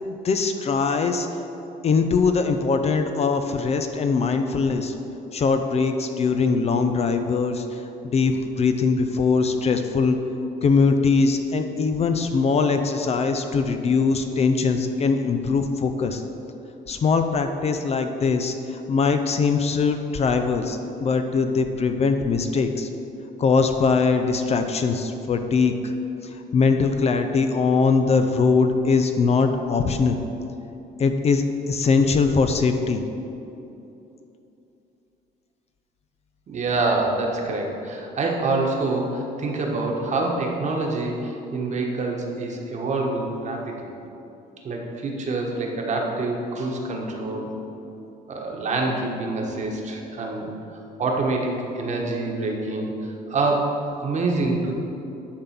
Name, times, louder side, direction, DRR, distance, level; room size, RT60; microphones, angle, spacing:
voice 1, 0.2-1.3 1.8-4.9 5.3-10.2 10.6-16.2 16.9-22.9 23.4-25.9 26.2-30.2 31.0-33.0, left 4 dB, 40° left, 7 dB, 0.5 m, -21 dB
voice 2, 36.5-43.9 44.6-47.5 48.3-50.5 51.0-54.7, right 2 dB, 45° right, 0 dB, 1.3 m, -26 dB
10.0 x 3.9 x 5.9 m, 2.9 s
cardioid pair, 110°, 17 cm